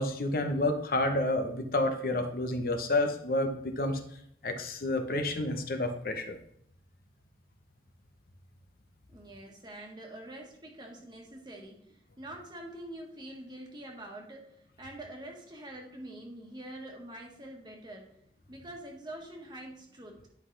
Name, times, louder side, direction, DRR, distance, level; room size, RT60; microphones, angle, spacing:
voice 1, 0.0-4.0 4.4-6.4, left 2 dB, 55° left, 5 dB, 0.8 m, -29 dB
voice 2, 9.1-18.1 18.5-20.3, right 1 dB, 25° right, 1 dB, 1.5 m, -45 dB
10.5 x 5.7 x 3.3 m, 0.73 s
head